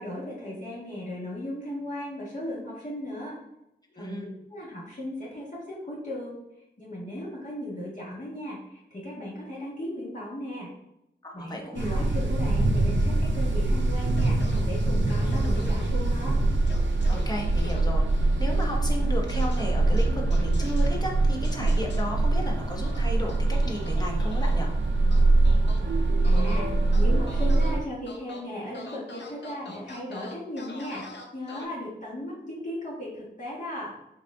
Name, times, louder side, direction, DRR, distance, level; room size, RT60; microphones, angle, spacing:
voice 1, 0.0-3.4 3.9-6.4 6.8-10.7 11.3-14.4 14.6-16.3 26.2-31.0 31.3-33.9, left 1 dB, 40° left, -7 dB, 1.7 m, -36 dB
voice 2, 3.9-4.3 11.2-12.0 17.1-24.7, equal, 20° left, -1 dB, 1.1 m, -34 dB
sound 1, 11.8-27.8, right 2 dB, 80° right, 0.6 m, -23 dB
sound 2, 14.2-14.6 15.1-15.9 16.7-17.2 17.6-17.8 19.3-19.6 20.0-20.9 21.4-22.0 22.8-24.5 25.1-25.8 26.2-26.6 26.9-27.7 28.1-28.4 28.7-31.6, left 3 dB, 70° left, 0.7 m, -44 dB
5.1 x 2.6 x 3.6 m, 0.83 s
cardioid pair, 40°, 19 cm